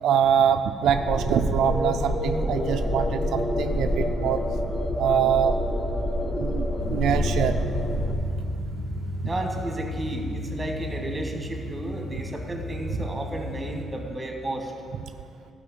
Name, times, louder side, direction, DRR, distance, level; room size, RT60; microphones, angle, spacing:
voice 1, 0.0-4.4 5.0-5.6 6.3-7.5, right 8 dB, 75° right, 6 dB, 0.4 m, -24 dB
sound 1, 0.9-8.1, left 1 dB, 25° left, 1.3 m, -27 dB
sound 2, 6.8-13.8, equal, 50° left, 3.2 m, -33 dB
voice 2, 9.2-14.7, right 1 dB, 15° right, 2 dB, 1.8 m, -33 dB
12.0 x 5.2 x 7.9 m, 2.3 s
cardioid pair, 90°, 0 cm